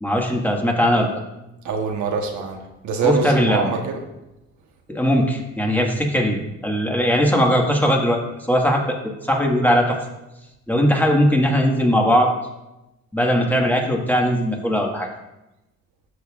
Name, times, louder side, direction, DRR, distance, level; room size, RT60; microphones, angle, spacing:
voice 1, 0.0-1.1 3.0-3.7 4.9-8.2 8.5-9.0 9.3-10.0 10.7-12.3 13.1-15.1, equal, 5° left, 0 dB, 1.6 m, -19 dB
voice 2, 1.6-2.6 2.8-4.0, right 5 dB, 75° right, 3 dB, 1.2 m, -24 dB
12.5 x 6.7 x 2.4 m, 0.96 s
cardioid pair, 90°, 30 cm